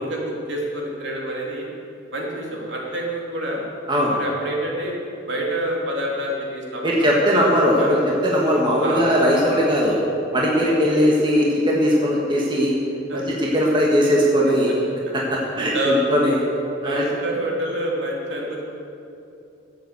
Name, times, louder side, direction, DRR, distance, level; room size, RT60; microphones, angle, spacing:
voice 1, 0.0-1.7 2.1-3.6 4.1-5.0 5.3-7.1 7.3-8.0 8.8-9.1 9.8-10.1 10.6-10.8 13.1-13.2 15.0-15.1 15.7-16.0 16.8-18.7, right 1 dB, 60° right, -2 dB, 2.8 m, -27 dB
voice 2, 6.8-10.0 10.3-12.7 13.1-14.8 15.1-16.4 16.8-17.0, equal, 25° right, -4 dB, 1.6 m, -19 dB
12.5 x 8.2 x 8.0 m, 2.7 s
head